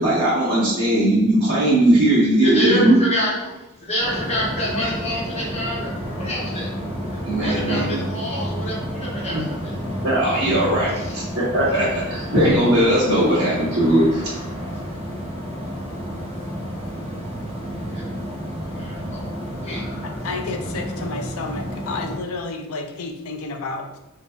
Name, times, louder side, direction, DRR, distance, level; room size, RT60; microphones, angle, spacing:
voice 1, 0.0-3.0 7.2-8.0 9.3-9.4 10.0-14.3, right 1 dB, 55° right, -10 dB, 1.1 m, -19 dB
voice 2, 2.4-6.7 7.0-9.8 10.9-11.2 11.9-12.0 17.6-18.2 18.6-19.9, equal, 30° left, -5 dB, 1.0 m, -28 dB
sound 1, 4.0-22.2, equal, 25° right, 0.9 m, -30 dB
Drum, 12.4-14.5, equal, 5° left, 0.4 m, -28 dB
voice 3, 20.2-24.0, left 3 dB, 70° left, 4 dB, 0.4 m, -30 dB
3.8 x 2.6 x 2.4 m, 0.95 s
head